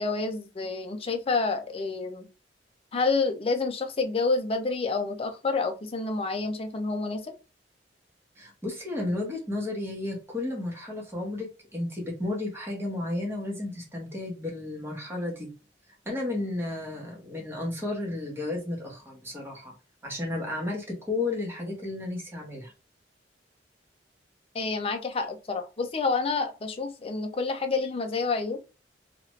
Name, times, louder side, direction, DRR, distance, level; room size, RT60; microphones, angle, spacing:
voice 1, 0.0-2.3 2.9-7.3 24.5-28.6, left 4 dB, 30° left, 6 dB, 0.5 m, -28 dB
voice 2, 8.4-15.5 16.1-19.7 20.0-22.7, left 2 dB, 15° right, -2 dB, 1.2 m, -33 dB
2.8 x 2.4 x 3.0 m, 0.31 s
head